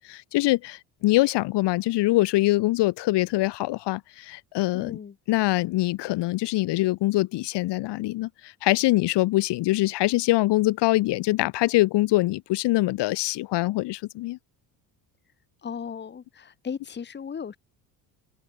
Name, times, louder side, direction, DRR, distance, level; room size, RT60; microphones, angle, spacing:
voice 1, 0.0-5.0 5.3-14.4, left 18 dB, 65° left, 1.1 m, -24 dB
voice 2, 4.7-5.2 15.6-17.6, left 7 dB, 25° left, 1.1 m, -36 dB
supercardioid pair, 90°, 45 cm